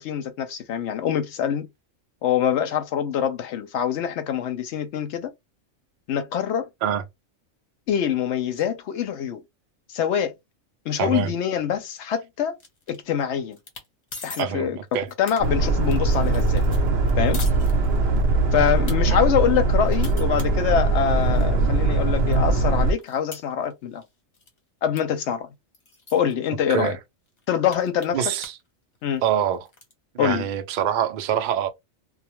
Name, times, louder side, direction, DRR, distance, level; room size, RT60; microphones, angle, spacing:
voice 1, 0.0-1.7 2.2-5.3 6.1-6.7 7.9-9.4 9.9-10.3 10.9-12.6 12.9-13.6 14.2-14.8 15.2-16.6 17.2-17.4 18.5-24.0 24.8-25.5 26.1-27.0 27.5-28.3 29.0-29.2 30.2-30.4, left 8 dB, 70° left, 0.8 m, -24 dB
voice 2, 11.0-11.3 14.4-15.1 19.1-19.2 26.7-27.0 28.1-28.5 29.2-29.7 30.1-31.7, right 9 dB, 90° right, 0.4 m, -25 dB
sound 1, 12.6-13.2 13.5-13.9 14.1-14.4 14.9-18.2 18.7-19.0 19.4-21.5 21.9-22.0 22.3-24.1 24.3-24.6 25.0-25.1 25.3-25.4 25.7-26.3 26.9-27.0 27.3-28.7 28.9-29.9, left 3 dB, 40° left, 0.7 m, -42 dB
Boat Water vehicle, 15.4-22.9, right 2 dB, 60° right, 0.8 m, -21 dB
2.3 x 2.1 x 2.9 m
omnidirectional pair, 1.4 m